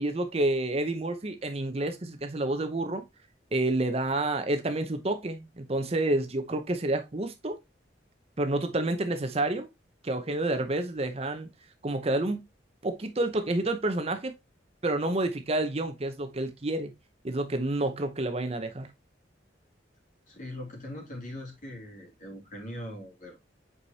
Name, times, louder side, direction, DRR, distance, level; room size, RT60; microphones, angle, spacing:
voice 1, 0.0-3.0 3.5-7.6 8.4-9.7 10.0-11.5 11.8-12.4 12.8-14.3 14.8-16.9 17.2-18.9, right 2 dB, 35° right, 0.7 m, -29 dB
voice 2, 20.3-23.4, left 1 dB, 45° left, 2.8 m, -41 dB
8.1 x 4.8 x 2.7 m
head